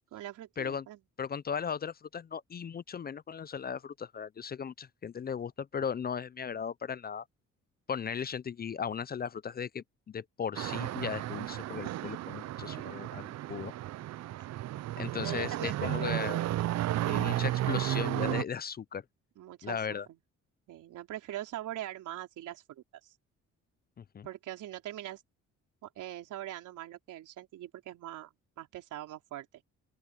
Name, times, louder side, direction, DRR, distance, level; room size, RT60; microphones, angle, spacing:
voice 1, 0.1-1.0 12.6-13.0 14.5-14.9 15.2-16.2 17.6-17.8 19.4-19.8 20.1-20.2 20.7-23.1 24.2-25.2 25.8-29.6, right 13 dB, 85° right, 3.9 m, -43 dB
voice 2, 1.2-7.2 7.9-13.7 15.0-16.4 17.1-19.0 19.6-20.1 24.0-24.3, left 7 dB, 30° left, 0.5 m, -37 dB
sound 1, 10.5-18.4, right 14 dB, 60° right, 0.5 m, -33 dB
open air
cardioid pair, 90°, 30 cm